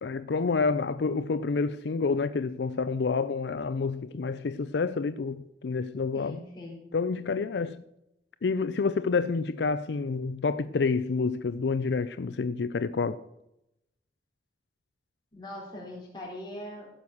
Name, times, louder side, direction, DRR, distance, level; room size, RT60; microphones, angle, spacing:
voice 1, 0.0-6.4 6.9-7.8 8.4-13.2, left 4 dB, 80° left, 0.5 m, -28 dB
voice 2, 6.1-6.9 15.3-16.9, left 1 dB, 25° left, 4.0 m, -41 dB
15.5 x 6.3 x 7.1 m
head